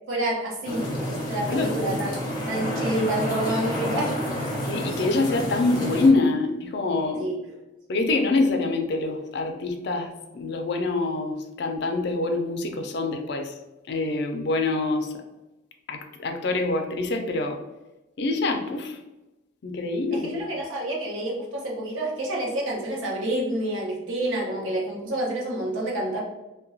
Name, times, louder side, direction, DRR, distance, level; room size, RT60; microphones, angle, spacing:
voice 1, 0.1-0.9 1.3-2.1 2.5-4.5 7.2-7.4 20.1-26.2, right 1 dB, 80° right, -2 dB, 0.8 m, -28 dB
sound 1, 0.6-6.1, equal, 20° left, 0.7 m, -29 dB
voice 2, 4.7-7.3 7.9-13.5 13.9-15.1 15.9-17.6 18.2-19.0 19.6-20.4, left 3 dB, 55° left, 4 dB, 0.4 m, -25 dB
2.8 x 2.2 x 2.6 m, 1.0 s
head